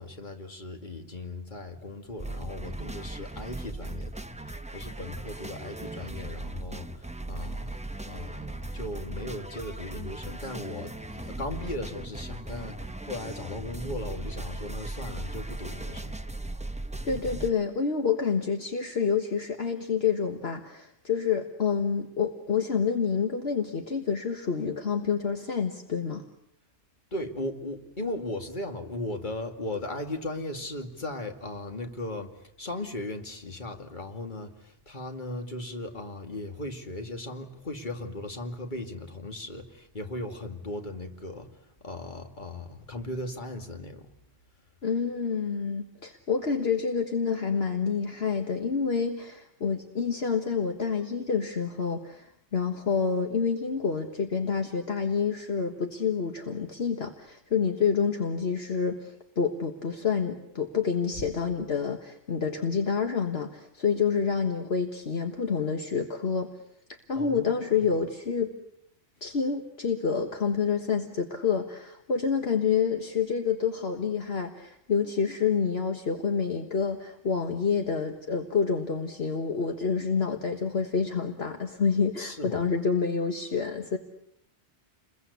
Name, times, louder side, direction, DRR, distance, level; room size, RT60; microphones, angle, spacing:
voice 1, 0.0-7.8 8.0-16.1 27.1-41.5 41.8-44.1 67.1-67.9 82.2-82.7, left 1 dB, 40° left, 5 dB, 2.5 m, -37 dB
sound 1, 2.2-17.5, right 2 dB, 5° right, 0.8 m, -38 dB
voice 2, 17.0-26.2 44.8-66.5 66.9-68.5 69.2-84.0, left 6 dB, 60° left, 5 dB, 1.7 m, -28 dB
29.5 x 22.0 x 8.3 m, 0.73 s
omnidirectional pair, 1.2 m